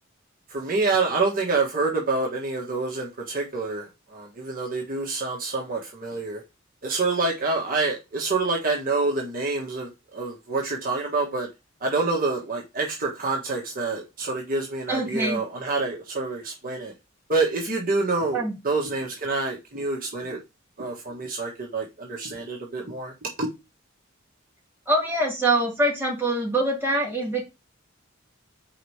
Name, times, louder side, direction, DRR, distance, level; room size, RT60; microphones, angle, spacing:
voice 1, 0.5-6.4 6.8-11.5 11.8-16.9 17.3-20.4 20.8-23.1 23.4-23.5, right 3 dB, 45° right, 1.5 m, -27 dB
voice 2, 14.9-15.4 18.3-18.5 24.9-27.4, right 1 dB, 10° right, 2.8 m, -24 dB
5.0 x 4.1 x 4.8 m
head